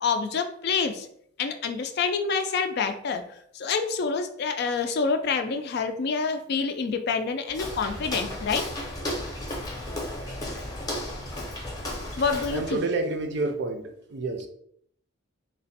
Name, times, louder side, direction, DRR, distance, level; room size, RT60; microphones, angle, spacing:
voice 1, 0.0-1.1 1.4-3.2 3.5-8.6 12.2-12.8, left 5 dB, 55° left, 7 dB, 0.4 m, -27 dB
Walk footsteps, 7.5-12.8, left 1 dB, 20° left, 0.7 m, -34 dB
voice 2, 12.3-14.5, right 2 dB, 60° right, 6 dB, 0.5 m, -29 dB
3.3 x 2.1 x 4.0 m, 0.68 s
head